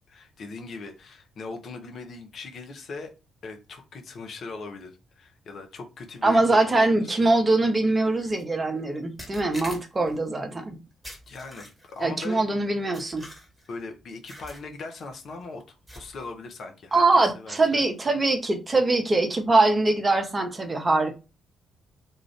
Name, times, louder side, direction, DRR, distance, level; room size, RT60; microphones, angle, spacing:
voice 1, 0.1-3.1 3.4-7.1 11.3-12.4 13.7-17.0 17.3-17.8, left 3 dB, 50° left, 0.7 m, -40 dB
voice 2, 6.2-10.8 12.0-13.2 16.9-21.2, right 2 dB, 25° right, 0.7 m, -22 dB
sound 1, 8.2-8.4 9.2-10.2 11.0-12.0 12.9-13.7 14.3-14.7 15.0-15.2 15.9-16.3, equal, 5° right, 1.3 m, -44 dB
2.4 x 2.4 x 3.3 m
figure-of-eight pair, 40°, 0 cm